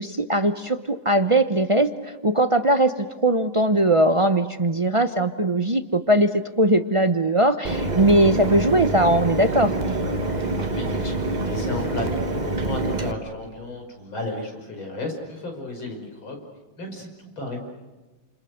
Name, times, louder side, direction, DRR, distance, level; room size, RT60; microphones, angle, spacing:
voice 1, 0.0-2.9 3.2-6.3 6.6-9.7, right 1 dB, 50° right, 9 dB, 0.4 m, -20 dB
Mechanisms, 7.6-13.1, right 2 dB, 25° right, 1.3 m, -26 dB
voice 2, 10.5-16.5 16.8-17.6, left 2 dB, 85° left, 3 dB, 6.3 m, -33 dB
29.5 x 28.0 x 6.6 m, 1.2 s
omnidirectional pair, 2.1 m